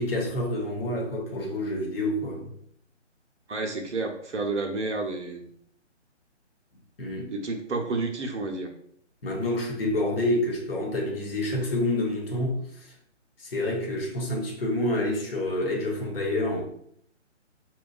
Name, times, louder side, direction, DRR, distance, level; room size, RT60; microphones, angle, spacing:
voice 1, 0.0-2.5 7.0-7.3 9.2-12.9 13.4-16.6, left 1 dB, 50° left, 1.0 m, -28 dB
voice 2, 3.5-5.5 7.3-8.7, right 3 dB, 70° right, 0.7 m, -30 dB
4.2 x 2.3 x 2.3 m
figure-of-eight pair, 150°, 36 cm